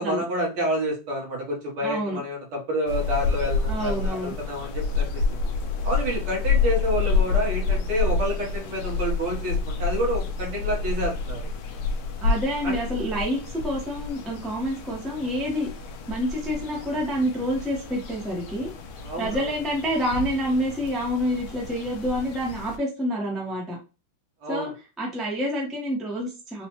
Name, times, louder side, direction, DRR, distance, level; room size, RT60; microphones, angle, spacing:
voice 1, 0.0-5.4 5.8-11.4 12.6-12.8 19.0-19.5 24.4-24.7, equal, 80° right, -2 dB, 2.2 m, -29 dB
voice 2, 1.8-2.2 3.7-4.3 12.2-15.7 16.1-18.7 19.2-23.8 24.5-24.7 25.0-26.7, equal, ahead, -3 dB, 0.7 m, -28 dB
sound 1, 2.9-22.8, left 4 dB, 85° left, 1.6 m, -29 dB
5.0 x 2.3 x 3.0 m, 0.32 s
omnidirectional pair, 2.3 m